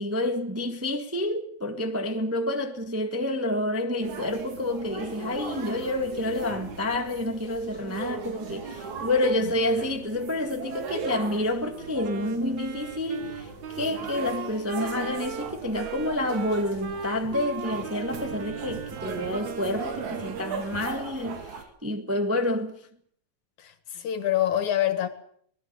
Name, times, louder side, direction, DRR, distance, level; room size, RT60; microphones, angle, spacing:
voice 1, 0.0-22.8, left 1 dB, 10° right, 0.7 m, -29 dB
sound 1, 4.0-21.6, right 5 dB, 90° right, 4.0 m, -38 dB
Wind instrument woodwind instrument, 12.0-20.7, right 6 dB, 75° right, 2.7 m, -38 dB
Wind instrument woodwind instrument 2, 14.4-19.5, right 5 dB, 30° right, 2.2 m, -49 dB
voice 2, 23.6-25.1, left 11 dB, 85° left, 3.3 m, -27 dB
24.0 x 20.0 x 6.8 m
omnidirectional pair, 3.3 m